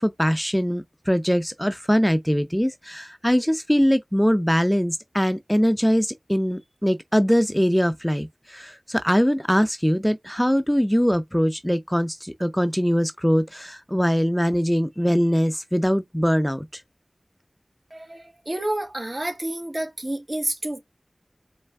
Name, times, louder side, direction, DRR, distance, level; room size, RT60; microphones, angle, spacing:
voice 1, 0.0-16.8, equal, 5° left, 0.4 m, -22 dB
voice 2, 17.9-20.8, right 1 dB, 45° right, 1.3 m, -29 dB
4.3 x 3.2 x 3.3 m
wide cardioid pair, 45°, 0 cm